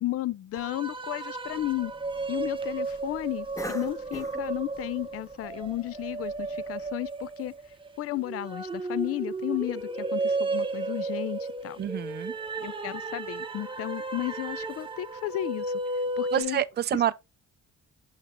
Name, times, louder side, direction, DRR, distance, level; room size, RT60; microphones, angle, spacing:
voice 1, 0.0-1.9 2.3-7.5 8.0-11.8 12.6-16.6, left 15 dB, 50° left, 0.4 m, -33 dB
sound 1, 0.5-16.4, right 3 dB, 15° right, 0.9 m, -34 dB
Cough, 1.5-6.9, left 2 dB, 10° left, 0.7 m, -46 dB
voice 2, 11.8-12.4 16.3-17.1, right 10 dB, 35° right, 0.4 m, -27 dB
7.1 x 5.6 x 3.0 m
cardioid pair, 90°, 30 cm